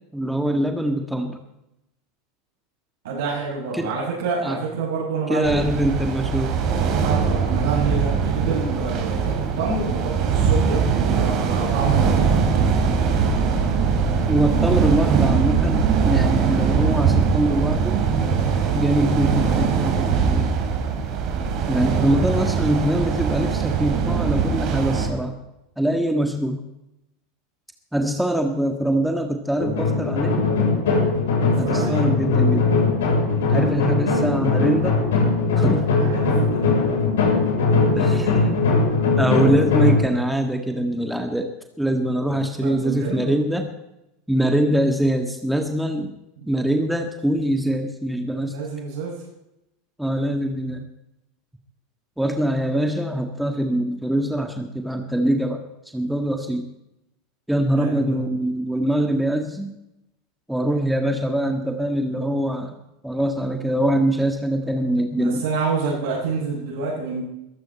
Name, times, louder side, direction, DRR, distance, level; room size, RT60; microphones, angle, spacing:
voice 1, 0.1-1.4 3.7-3.9 4.4-4.6 5.3-6.6 14.3-18.0 18.7-20.5 21.7-25.4 25.8-26.6 27.9-30.4 31.6-32.7 33.5-35.0 35.6-35.9 37.9-38.5 39.2-41.5 41.8-43.7 44.3-46.1 46.5-48.6 50.0-50.8 52.2-55.6 55.9-56.7 57.5-59.7 60.5-62.8 63.0-65.4, right 1 dB, 5° right, 5 dB, 1.8 m, -23 dB
voice 2, 3.0-5.6 7.0-12.4 21.8-22.5 31.5-32.1 35.9-37.0 42.6-43.3 48.5-49.2 57.7-58.2 65.1-67.2, right 4 dB, 70° right, -9 dB, 7.6 m, -28 dB
sound 1, 5.4-25.1, right 6 dB, 45° right, 4.3 m, -21 dB
sound 2, 29.6-40.0, left 3 dB, 65° left, 7.5 m, -20 dB
21.5 x 15.0 x 4.4 m, 0.88 s
figure-of-eight pair, 80°, 0 cm